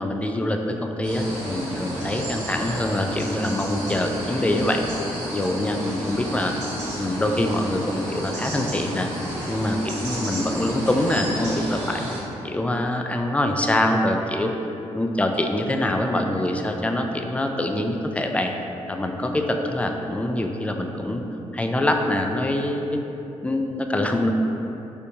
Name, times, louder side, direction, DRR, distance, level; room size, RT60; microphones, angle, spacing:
voice 1, 0.0-4.8 5.3-6.5 7.0-9.1 9.5-12.1 12.4-14.5 14.9-18.5 18.9-21.2 21.5-23.0 23.4-24.3, left 1 dB, 10° left, 3 dB, 0.3 m, -24 dB
sound 1, 1.0-12.2, equal, 70° right, 1.3 m, -31 dB
3.3 x 2.6 x 2.8 m, 2.9 s
supercardioid pair, 50°, 14 cm